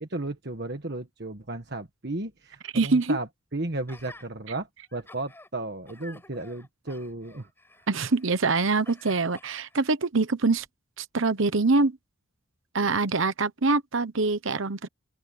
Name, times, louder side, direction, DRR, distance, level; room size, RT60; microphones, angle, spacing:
voice 1, 0.0-7.5, right 2 dB, 50° right, 1.5 m, -34 dB
voice 2, 2.7-3.2 7.9-10.6 11.0-12.0 12.7-14.9, right 3 dB, 65° right, 1.0 m, -24 dB
Gasp, 3.9-4.3 4.8-5.5 5.9-8.4 8.8-9.9 10.6-10.7, left 2 dB, 10° left, 6.2 m, -50 dB
open air
head